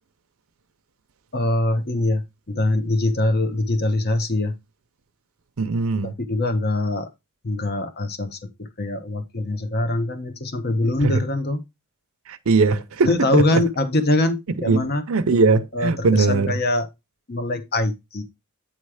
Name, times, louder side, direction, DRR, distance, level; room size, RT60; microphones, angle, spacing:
voice 1, 1.3-4.5 6.0-7.1 7.4-11.6 13.0-15.0 15.7-16.9 17.3-18.2, left 2 dB, 45° left, 1.0 m, -23 dB
voice 2, 5.6-6.1 11.0-11.2 12.3-13.6 14.7-16.5, right 4 dB, 70° right, 0.6 m, -20 dB
8.8 x 3.2 x 4.8 m
head